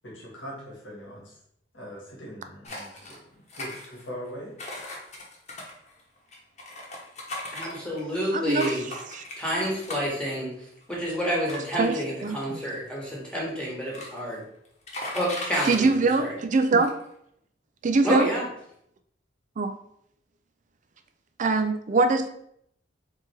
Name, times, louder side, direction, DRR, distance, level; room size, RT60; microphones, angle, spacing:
voice 1, 0.0-1.4 1.7-4.5, equal, 90° left, -4 dB, 1.8 m, -41 dB
sound 1, 2.6-3.2 3.5-4.3 4.6-8.1 8.6-10.2 10.8-10.9 11.5-12.5 13.3-13.4 13.7-14.4 14.7-15.9 16.4-16.5 16.7-17.0, left 1 dB, 40° left, 1.1 m, -38 dB
voice 2, 7.5-8.9 9.4-10.5 10.9-14.4 15.1-16.3 18.0-18.5, equal, 5° left, -4 dB, 1.3 m, -29 dB
voice 3, 8.3-8.7 9.1-9.2 11.8-11.9 12.2-12.6 15.7-16.9 17.8-18.3 19.6-19.8 21.4-22.3, right 3 dB, 45° right, 8 dB, 0.4 m, -23 dB
4.2 x 3.4 x 3.4 m, 0.73 s
head